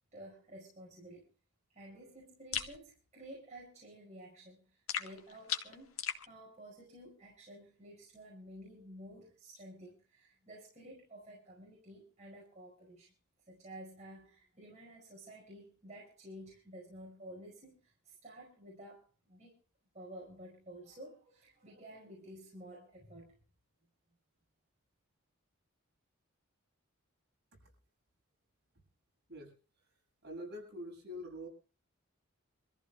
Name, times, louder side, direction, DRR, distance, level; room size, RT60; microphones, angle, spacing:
voice 1, 0.1-1.3 1.7-13.1 13.5-19.6 19.9-23.4, right 1 dB, 35° right, -3 dB, 5.2 m, -52 dB
sound 1, 2.5-2.8 4.9-6.3, left 8 dB, 85° left, 1.6 m, -37 dB
voice 2, 29.3-29.9 30.2-31.5, equal, 50° right, 0 dB, 7.6 m, -46 dB
26.5 x 14.5 x 2.4 m, 0.37 s
head